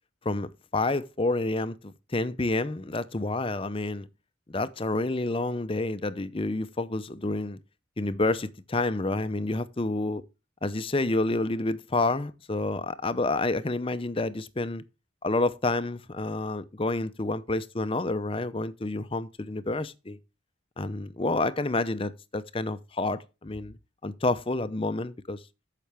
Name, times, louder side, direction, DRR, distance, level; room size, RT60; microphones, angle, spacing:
voice 1, 0.2-4.1 4.5-7.6 8.0-10.2 10.6-14.8 15.2-20.2 20.8-23.8 24.0-25.4, left 2 dB, 25° left, 0.6 m, -29 dB
14.0 x 5.8 x 3.5 m
head